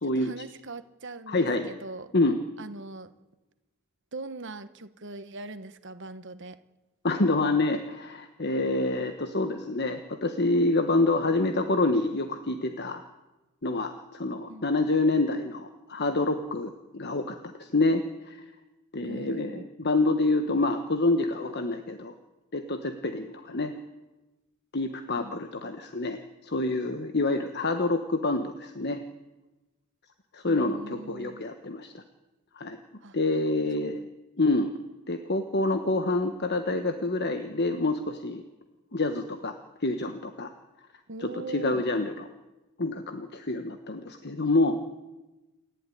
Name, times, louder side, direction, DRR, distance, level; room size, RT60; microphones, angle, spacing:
voice 1, 0.0-2.1 2.6-3.1 4.1-6.6 14.5-14.9 19.0-19.7 25.1-25.4 30.4-31.4 33.0-33.2 33.9-34.1 41.1-41.9, right 2 dB, 55° right, 11 dB, 1.3 m, -41 dB
voice 2, 1.3-1.7 2.1-2.4 7.0-13.0 13.6-18.0 18.3-18.4 18.9-22.1 22.5-23.7 24.7-29.0 30.3-32.0 32.6-32.8 33.1-34.0 34.4-34.7 35.1-38.4 38.9-39.5 39.8-40.5 41.2-42.2 42.8-44.8, left 2 dB, 50° left, 7 dB, 1.3 m, -27 dB
28.5 x 12.0 x 10.0 m, 1.1 s
head